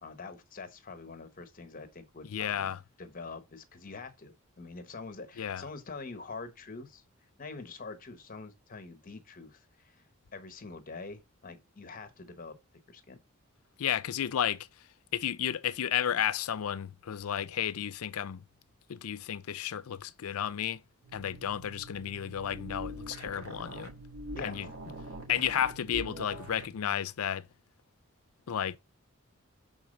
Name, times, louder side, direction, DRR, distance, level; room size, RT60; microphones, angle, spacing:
voice 1, 0.0-2.7 3.0-7.0 7.4-10.0 10.3-12.6 12.9-13.2 24.3-24.7, left 4 dB, 40° left, 0.9 m, -45 dB
voice 2, 2.2-2.8 5.4-5.6 13.8-14.7 15.1-18.4 18.9-20.8 21.1-23.9 24.4-24.7 25.3-27.5 28.5-28.8, left 9 dB, 80° left, 0.5 m, -32 dB
sound 1, 21.0-26.8, right 1 dB, 75° right, 1.7 m, -44 dB
5.9 x 3.9 x 5.0 m
head